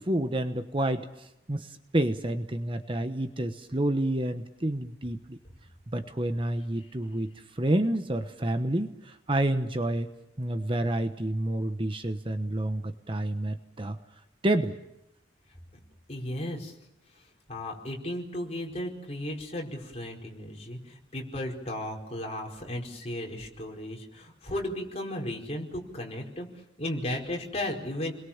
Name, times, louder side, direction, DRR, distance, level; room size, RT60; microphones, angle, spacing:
voice 1, 0.0-5.4 5.9-7.3 7.5-10.1 10.4-14.0 14.4-14.8, right 1 dB, 30° right, 8 dB, 1.1 m, -29 dB
voice 2, 16.1-16.7 17.5-26.5 26.8-28.1, left 1 dB, 35° left, 0 dB, 4.8 m, -35 dB
29.5 x 22.0 x 7.3 m, 0.85 s
head